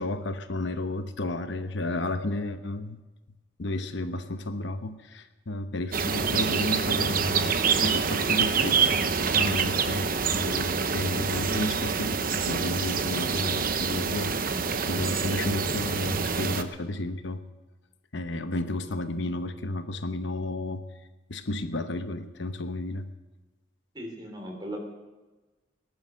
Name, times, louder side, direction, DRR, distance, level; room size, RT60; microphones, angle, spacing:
voice 1, 0.0-3.0 3.6-17.4 18.1-20.8 21.3-23.1, left 2 dB, 65° left, 9 dB, 0.9 m, -32 dB
sound 1, 5.9-16.6, right 5 dB, 45° right, 0.9 m, -26 dB
voice 2, 23.9-24.8, right 1 dB, 20° right, 2 dB, 3.5 m, -37 dB
19.5 x 11.0 x 6.4 m, 1.2 s
head